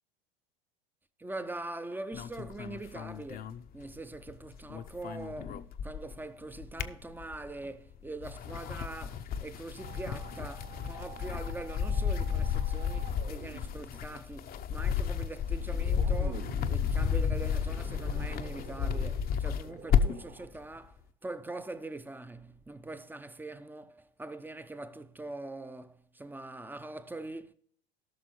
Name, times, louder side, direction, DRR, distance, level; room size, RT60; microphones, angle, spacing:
voice 1, 1.2-27.5, right 2 dB, 5° right, 0.6 m, -43 dB
sound 1, 2.1-4.3 4.6-6.2 6.5-7.6 8.1-20.3, left 7 dB, 30° left, 0.7 m, -32 dB
sound 2, 9.8-20.5, right 9 dB, 35° right, 1.1 m, -49 dB
18.0 x 6.0 x 3.2 m
hypercardioid pair, 90°, 29 cm